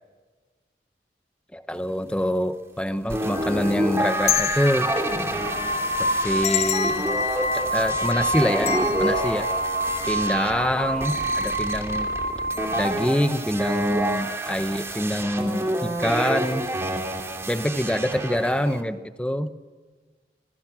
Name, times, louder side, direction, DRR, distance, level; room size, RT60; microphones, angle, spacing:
voice 1, 1.5-4.9 6.0-7.0 7.5-8.7 9.0-9.5 10.1-12.1 12.8-16.7 17.5-19.5, equal, 5° left, 10 dB, 0.9 m, -25 dB
sound 1, 3.1-18.8, right 1 dB, 15° right, 2.6 m, -28 dB
sound 2, 3.3-10.5 10.9-11.0 11.9-12.2 12.5-12.7, left 10 dB, 40° left, 0.8 m, -31 dB
sound 3, 4.3-4.4 5.3-13.0, right 1 dB, 50° right, 1.8 m, -28 dB
27.5 x 21.5 x 6.1 m, 1.4 s
head